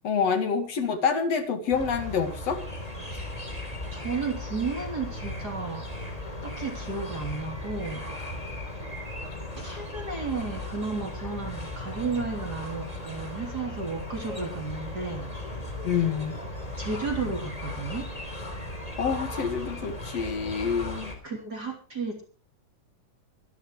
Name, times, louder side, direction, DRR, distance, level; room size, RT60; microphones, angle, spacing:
voice 1, 0.0-2.6 15.8-16.4 19.0-21.1, left 6 dB, 50° left, 8 dB, 2.3 m, -27 dB
sound 1, 1.7-21.1, left 1 dB, 10° left, 2.9 m, -37 dB
voice 2, 3.9-5.9 6.4-8.3 9.6-15.3 16.8-18.1 21.2-22.2, right 4 dB, 25° right, 2 dB, 3.3 m, -33 dB
24.5 x 12.0 x 3.2 m, 0.37 s
omnidirectional pair, 4.8 m